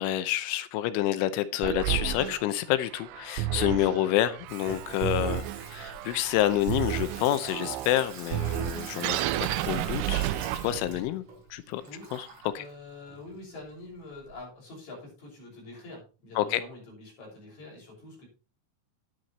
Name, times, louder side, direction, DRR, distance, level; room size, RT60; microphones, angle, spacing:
voice 1, 0.0-10.3 10.6-11.2 11.5-11.8 12.1-12.3 12.5-12.6 16.4-16.6, left 13 dB, 85° left, 3.2 m, -28 dB
sound 1, 1.6-11.1, right 13 dB, 80° right, 2.9 m, -32 dB
Water tap faucet / Sink (filling or washing), 2.6-14.3, right 3 dB, 45° right, 5.3 m, -45 dB
voice 2, 12.5-18.3, left 2 dB, 35° left, 7.1 m, -45 dB
10.0 x 9.5 x 4.2 m
omnidirectional pair, 5.6 m